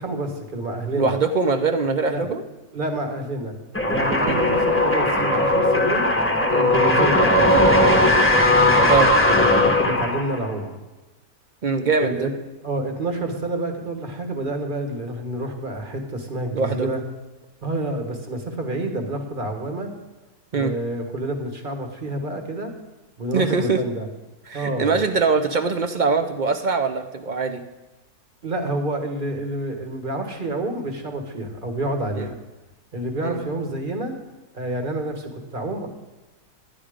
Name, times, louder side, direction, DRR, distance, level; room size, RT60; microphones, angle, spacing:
voice 1, 0.0-1.1 2.1-2.3 2.7-3.5 3.9-6.1 6.7-8.2 9.3-10.7 12.0-12.3 12.6-17.0 17.6-19.9 20.5-22.7 23.2-24.1 24.5-25.1 28.4-32.4 32.9-34.2 34.5-35.9, right 1 dB, 35° right, 4 dB, 1.6 m, -28 dB
voice 2, 1.0-2.4 4.3-4.4 6.5-6.7 8.9-9.1 11.6-12.3 16.5-16.9 20.5-20.7 23.3-23.8 24.5-27.6 32.1-32.3 33.2-33.4, right 4 dB, 50° right, 8 dB, 0.6 m, -22 dB
sound 1, 3.7-10.5, left 1 dB, 10° left, 1.1 m, -18 dB
11.5 x 10.0 x 5.0 m, 1.1 s
omnidirectional pair, 1.7 m